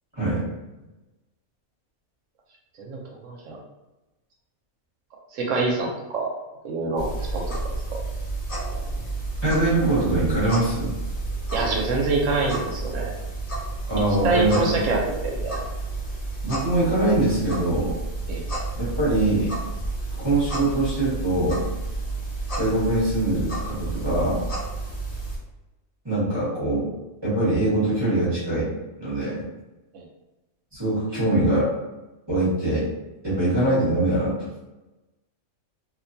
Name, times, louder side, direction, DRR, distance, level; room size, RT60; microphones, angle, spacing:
voice 1, 2.8-3.6 5.3-6.3 6.6-7.5 7.9-8.0 11.5-13.1 14.2-15.6 18.3-18.4 29.9-30.0, right 3 dB, 70° right, 0 dB, 0.9 m, -26 dB
sound 1, 7.0-25.4, right 2 dB, 45° left, 0.9 m, -31 dB
voice 2, 9.4-10.9 13.9-14.6 16.4-17.9 18.8-19.5 20.2-21.6 22.6-24.4 26.0-26.9 27.2-28.7 29.0-29.4 30.7-31.7 32.3-32.9 33.2-34.4, right 2 dB, 20° right, -9 dB, 0.9 m, -23 dB
2.6 x 2.1 x 2.6 m, 1.1 s
omnidirectional pair, 1.4 m